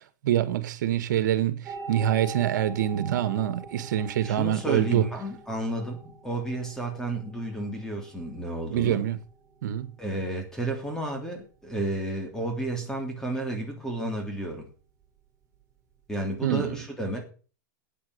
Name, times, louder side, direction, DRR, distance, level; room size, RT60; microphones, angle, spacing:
voice 1, 0.2-5.1 8.7-9.2 9.6-9.9 16.4-16.8, right 11 dB, 70° right, 1.8 m, -25 dB
sound 1, 1.6-16.4, right 3 dB, 25° right, 5.3 m, -46 dB
voice 2, 4.2-9.0 10.0-14.7 16.1-17.2, right 1 dB, 5° left, 3.1 m, -32 dB
9.3 x 8.7 x 8.5 m
hypercardioid pair, 140°, 10 cm